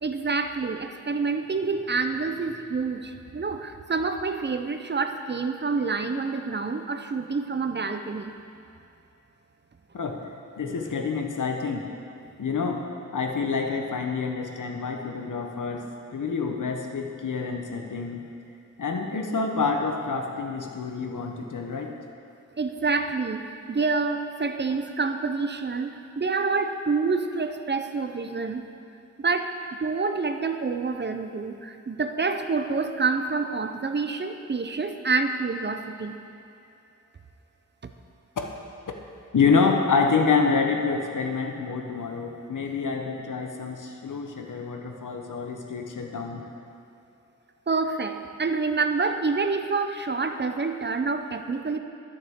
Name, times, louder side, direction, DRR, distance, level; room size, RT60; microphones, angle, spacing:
voice 1, 0.0-8.3 22.6-28.6 29.2-36.2 47.7-51.8, right 4 dB, 35° right, 7 dB, 0.5 m, -27 dB
voice 2, 10.6-11.9 12.4-12.8 13.1-18.2 18.8-21.9 39.3-46.4, left 5 dB, 75° left, 2 dB, 0.9 m, -27 dB
13.0 x 6.6 x 3.6 m, 2.6 s
wide cardioid pair, 100°, 31 cm